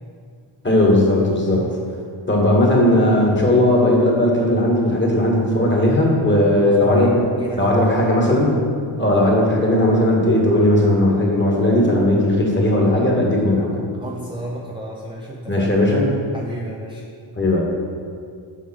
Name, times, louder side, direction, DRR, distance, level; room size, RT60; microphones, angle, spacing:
voice 1, 0.6-1.6 2.3-7.2 7.6-8.5 9.0-13.7 15.5-16.1 17.4-17.6, left 1 dB, 25° left, -2 dB, 1.8 m, -17 dB
voice 2, 6.6-8.1 14.0-15.7 16.3-17.0, right 1 dB, 10° right, -2 dB, 0.7 m, -32 dB
7.5 x 4.9 x 6.2 m, 2.2 s
wide cardioid pair, 110°, 48 cm